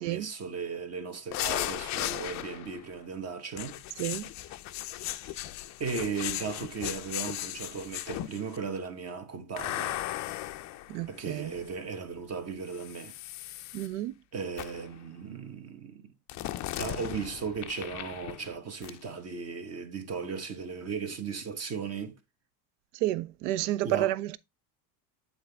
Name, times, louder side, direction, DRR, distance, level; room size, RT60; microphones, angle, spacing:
voice 1, 0.0-3.8 5.2-5.5 5.8-10.0 11.1-13.2 14.3-16.1 16.8-22.2 23.8-24.1, right 5 dB, 30° right, 1.1 m, -36 dB
sound 1, 1.3-2.8 3.6-8.6 9.6-11.7 12.7-13.9 14.6-14.9 16.3-18.6 18.8-19.0, left 14 dB, 40° left, 0.4 m, -37 dB
voice 2, 4.0-4.3 10.9-11.5 13.7-14.1 22.9-24.4, right 15 dB, 75° right, 0.6 m, -30 dB
7.9 x 4.0 x 3.3 m
supercardioid pair, 110°, 49 cm